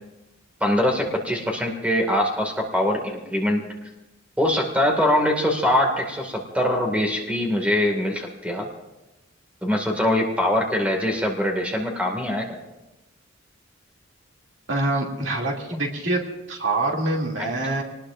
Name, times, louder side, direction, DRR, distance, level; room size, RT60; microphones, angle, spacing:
voice 1, 0.6-3.6 4.4-8.7 9.6-12.5, left 1 dB, 5° right, 1 dB, 2.1 m, -23 dB
voice 2, 14.7-17.8, right 2 dB, 65° right, -1 dB, 2.7 m, -25 dB
26.5 x 19.5 x 2.6 m, 1.0 s
head